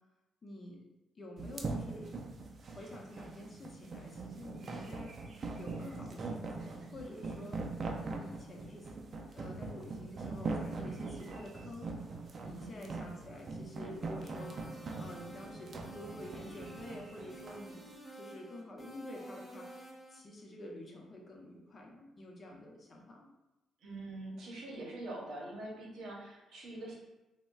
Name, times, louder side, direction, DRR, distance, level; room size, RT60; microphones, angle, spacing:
voice 1, 0.4-0.8 1.2-2.1 2.7-5.1 5.5-7.6 8.0-8.9 9.3-23.3, left 1 dB, 35° left, -1 dB, 0.6 m, -49 dB
sound 1, 1.4-17.6, right 3 dB, 45° right, 0.4 m, -41 dB
voice 2, 12.6-12.9 23.8-26.9, right 1 dB, 70° right, -3 dB, 0.8 m, -44 dB
sound 2, 14.3-20.2, right 1 dB, 15° right, 1.2 m, -51 dB
3.5 x 2.1 x 2.3 m, 1.0 s
cardioid pair, 90°, 0 cm